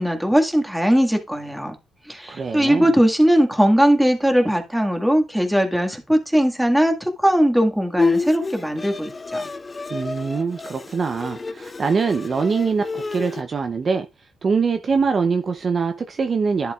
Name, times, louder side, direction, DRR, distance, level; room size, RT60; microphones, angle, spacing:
voice 1, 0.0-1.8 2.1-9.5, equal, 5° right, 1.9 m, -19 dB
voice 2, 2.3-2.9 9.9-14.1 14.4-16.7, right 5 dB, 40° right, 0.8 m, -23 dB
Bowed string instrument, 8.0-13.4, left 3 dB, 25° left, 0.6 m, -28 dB
11.0 x 7.8 x 2.5 m
cardioid pair, 90°, 0 cm